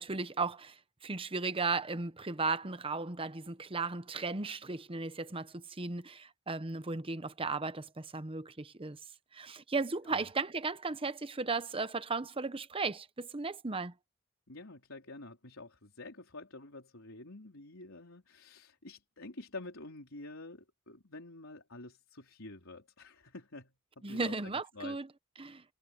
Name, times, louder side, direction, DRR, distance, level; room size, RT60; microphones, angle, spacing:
voice 1, 0.0-9.0 9.3-13.9 24.0-25.1 25.4-25.6, right 3 dB, 25° right, 0.9 m, -36 dB
voice 2, 14.5-25.0, left 2 dB, 80° left, 4.1 m, -48 dB
head